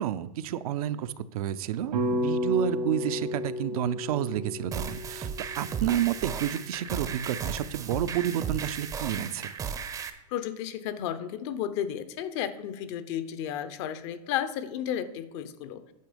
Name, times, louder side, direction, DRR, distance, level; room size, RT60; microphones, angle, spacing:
voice 1, 0.0-5.3 5.6-9.5, right 11 dB, 65° right, 12 dB, 0.6 m, -30 dB
sound 1, 1.9-6.2, equal, 85° right, 1.8 m, -32 dB
sound 2, 4.7-10.1, right 7 dB, 15° right, 0.6 m, -35 dB
voice 2, 10.3-15.8, left 10 dB, 45° left, 13 dB, 0.8 m, -33 dB
9.4 x 6.0 x 5.1 m, 0.99 s
supercardioid pair, 145°, 20 cm